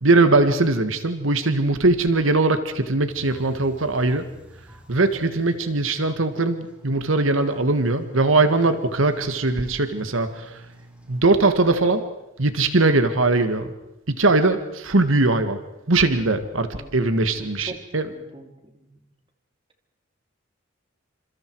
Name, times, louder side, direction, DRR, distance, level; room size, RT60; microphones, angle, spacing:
voice 1, 0.0-4.3 4.9-10.5 11.1-12.1 12.4-13.7 14.1-15.6 15.9-18.1, right 2 dB, 90° right, 9 dB, 1.7 m, -20 dB
sound 1, 3.1-12.2 12.9-13.0 14.2-14.4, right 1 dB, 5° right, 3.5 m, -49 dB
voice 2, 17.3-19.0, right 2 dB, 25° right, 5 dB, 2.8 m, -43 dB
28.5 x 27.0 x 4.7 m, 0.90 s
head